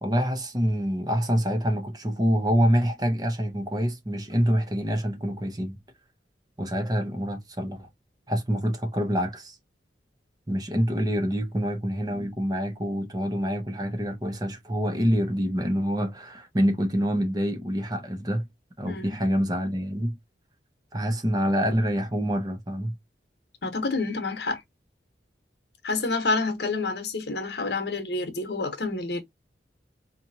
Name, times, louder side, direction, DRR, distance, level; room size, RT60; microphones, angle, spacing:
voice 1, 0.0-5.8 6.6-7.9 8.3-9.6 10.5-18.5 18.8-20.2 20.9-22.9, equal, 20° right, 0.8 m, -26 dB
voice 2, 18.8-19.2 23.6-24.6 25.8-29.2, left 3 dB, 65° left, 1.1 m, -28 dB
4.1 x 3.0 x 2.7 m
head